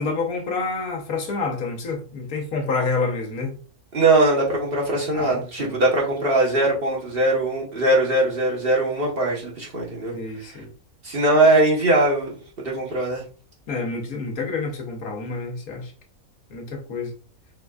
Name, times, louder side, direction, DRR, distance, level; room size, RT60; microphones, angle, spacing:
voice 1, 0.0-3.5 5.1-5.8 10.1-10.7 13.7-15.9 16.5-17.1, left 4 dB, 80° left, 1.4 m, -28 dB
voice 2, 3.9-10.1 11.0-13.2, right 2 dB, 45° right, 1.3 m, -21 dB
4.6 x 3.7 x 2.3 m
omnidirectional pair, 1.5 m